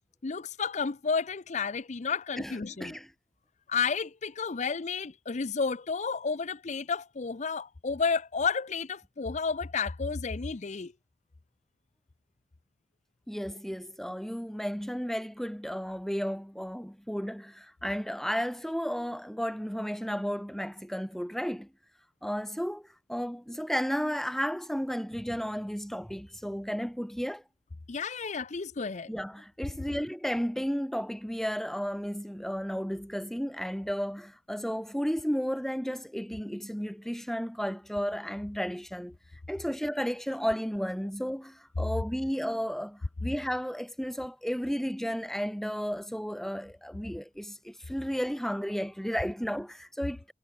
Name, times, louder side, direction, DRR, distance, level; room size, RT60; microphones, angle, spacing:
voice 1, 0.2-3.0 3.7-10.9 27.9-29.1, left 5 dB, 40° left, 0.6 m, -31 dB
voice 2, 2.4-3.1 13.3-21.7 22.2-27.4 29.1-39.2 39.5-50.3, equal, ahead, 1.2 m, -33 dB
head